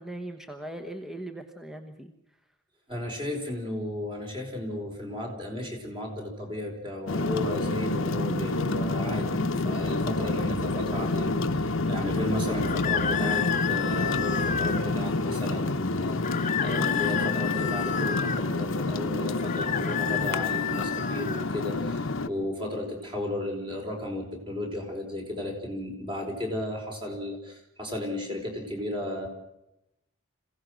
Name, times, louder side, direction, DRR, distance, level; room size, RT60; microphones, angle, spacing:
voice 1, 0.0-2.1, right 1 dB, ahead, 4 dB, 1.2 m, -39 dB
voice 2, 2.9-29.3, left 1 dB, 25° right, 2 dB, 4.6 m, -34 dB
sound 1, 7.1-22.3, left 2 dB, 65° left, 1.0 m, -28 dB
sound 2, 7.2-14.8, right 5 dB, 85° right, 1.1 m, -41 dB
sound 3, 12.6-14.8 16.2-18.4 19.4-21.5, left 9 dB, 35° left, 1.1 m, -30 dB
27.0 x 17.0 x 6.4 m, 0.85 s
head